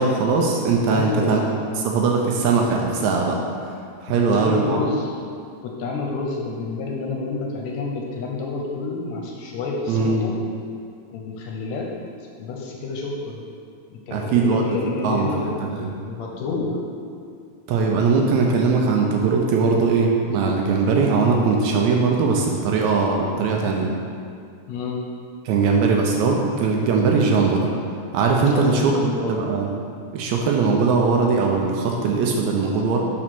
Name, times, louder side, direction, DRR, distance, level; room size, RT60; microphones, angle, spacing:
voice 1, 0.0-1.4 1.8-3.4 4.0-4.8 9.9-10.2 14.1-14.6 15.0-15.9 17.7-23.9 25.5-27.7 28.1-28.9 29.3-29.7 30.1-33.0, right 4 dB, 80° right, 0 dB, 1.8 m, -20 dB
voice 2, 0.9-1.4 4.1-5.1 5.6-10.3 11.1-11.9 12.4-13.4 13.9-15.5 16.0-16.8 24.7-25.0 28.4-29.4, left 3 dB, 80° left, -1 dB, 1.8 m, -28 dB
4.9 x 4.2 x 5.9 m, 2.3 s
omnidirectional pair, 3.4 m